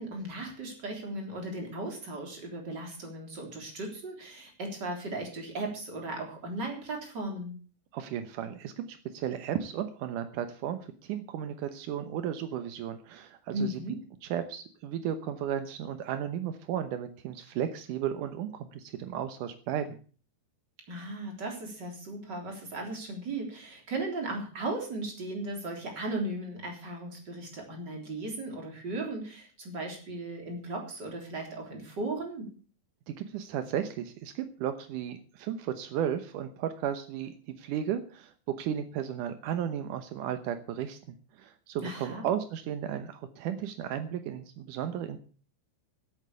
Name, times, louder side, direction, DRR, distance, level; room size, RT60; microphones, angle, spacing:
voice 1, 0.0-7.6 13.5-14.0 20.9-32.5 41.8-42.3, right 2 dB, 25° right, 2 dB, 3.8 m, -36 dB
voice 2, 7.9-13.8 14.3-20.0 33.1-41.0 41.3-45.2, right 9 dB, 85° right, 9 dB, 1.8 m, -34 dB
14.5 x 8.4 x 6.7 m, 0.40 s
omnidirectional pair, 5.1 m